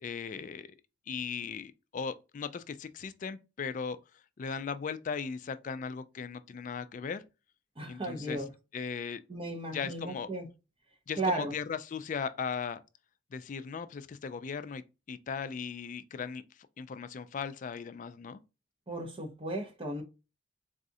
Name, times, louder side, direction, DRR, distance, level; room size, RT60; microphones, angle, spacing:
voice 1, 0.0-0.7 1.1-4.0 4.4-7.2 7.9-8.4 8.7-9.2 9.7-10.3 11.1-12.8 13.3-16.4 16.8-18.4, left 6 dB, 40° left, 0.3 m, -37 dB
voice 2, 7.8-8.5 9.3-10.5 11.2-11.5 18.9-20.0, right 2 dB, 30° right, 0.8 m, -35 dB
4.0 x 2.4 x 2.6 m
head